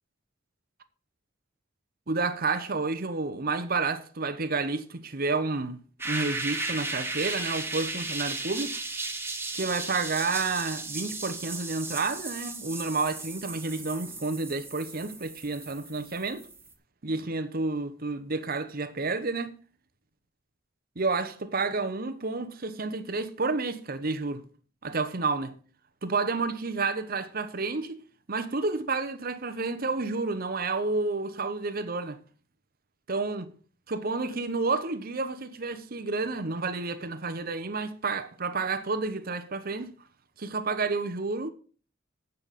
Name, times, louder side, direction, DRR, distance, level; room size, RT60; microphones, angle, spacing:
voice 1, 2.1-5.8 6.0-8.8 9.5-16.5 17.0-19.5 21.0-24.4 24.8-25.5 26.0-28.0 28.3-32.2 33.1-33.5 33.9-39.9 40.4-41.5, right 3 dB, 50° right, 1.0 m, -30 dB
sound 1, 6.0-16.7, right 3 dB, 10° right, 1.5 m, -35 dB
8.9 x 5.4 x 7.3 m
head